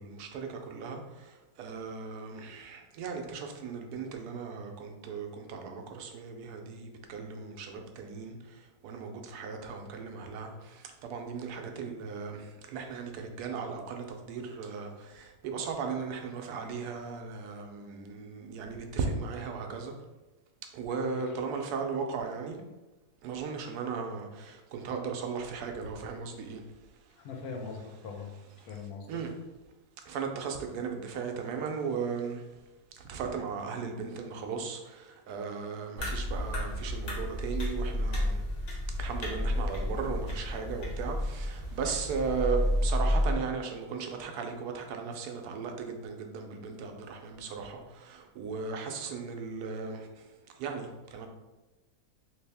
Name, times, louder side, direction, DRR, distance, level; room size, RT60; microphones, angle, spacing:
voice 1, 0.0-19.9 20.7-22.6 23.2-26.6 29.1-29.3 30.1-32.4 32.9-38.4 39.0-50.3 50.6-51.3, right 5 dB, 85° right, 4 dB, 1.1 m, -37 dB
voice 2, 20.9-21.3 27.1-28.4 28.6-29.2, left 4 dB, 75° left, 1 dB, 1.1 m, -41 dB
sound 1, 36.0-43.3, left 1 dB, 50° left, 0.9 m, -31 dB
3.2 x 2.7 x 3.4 m, 1.1 s
omnidirectional pair, 1.6 m